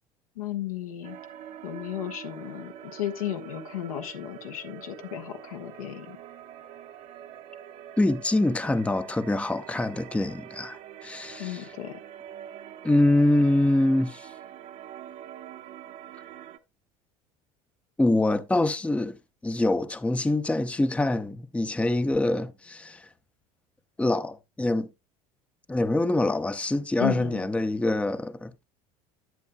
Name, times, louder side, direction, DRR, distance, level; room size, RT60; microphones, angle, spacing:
voice 1, 0.3-1.2 1.6-6.2 11.4-12.0 27.0-27.4, left 12 dB, 75° left, 1.3 m, -34 dB
sound 1, 1.0-16.6, right 10 dB, 50° right, 1.0 m, -45 dB
voice 2, 8.0-11.7 12.8-14.3 18.0-19.2 19.4-23.1 24.0-24.9 25.7-28.6, left 2 dB, 5° left, 0.7 m, -25 dB
11.0 x 8.7 x 2.2 m
figure-of-eight pair, 70°, 18 cm